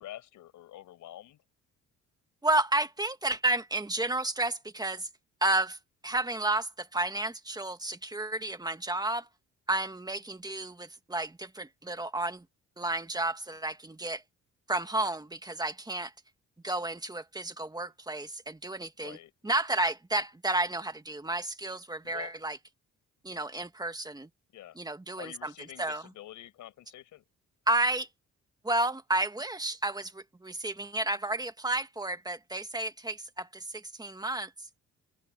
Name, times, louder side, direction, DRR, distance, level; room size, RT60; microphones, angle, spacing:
voice 1, 0.0-1.4 19.0-19.3 22.0-22.3 24.5-24.8 25.2-27.2, left 13 dB, 80° left, 5.7 m, -47 dB
voice 2, 2.4-5.1 5.4-5.8 6.0-9.3 9.7-12.4 12.8-14.2 14.7-16.1 16.6-19.2 19.4-22.6 23.2-24.3 24.8-25.5 25.8-26.0 27.7-28.1 28.6-34.5, right 2 dB, 15° right, 2.0 m, -31 dB
open air
cardioid pair, 90°, 30 cm